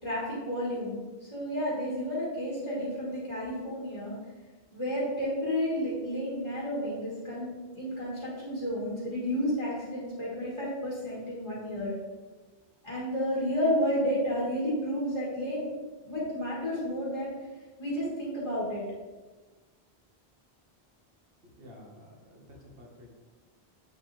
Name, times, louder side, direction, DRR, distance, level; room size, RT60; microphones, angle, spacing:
voice 1, 0.0-4.2 4.7-11.9 12.8-15.7 16.0-17.3 17.8-18.8, equal, 30° left, -7 dB, 1.8 m, -31 dB
voice 2, 21.6-23.2, left 1 dB, 65° right, -2 dB, 1.9 m, -51 dB
7.1 x 7.0 x 3.4 m, 1.3 s
omnidirectional pair, 1.1 m